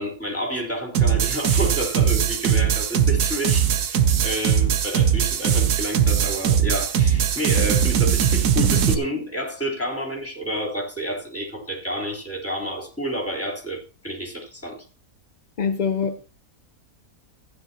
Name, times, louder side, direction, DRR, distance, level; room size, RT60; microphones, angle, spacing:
voice 1, 0.0-14.8, equal, 10° left, 3.6 m, -29 dB
sound 1, 0.9-8.9, right 8 dB, 80° right, 1.5 m, -20 dB
voice 2, 15.6-16.3, left 6 dB, 55° left, 0.4 m, -24 dB
15.0 x 10.0 x 2.9 m
omnidirectional pair, 1.6 m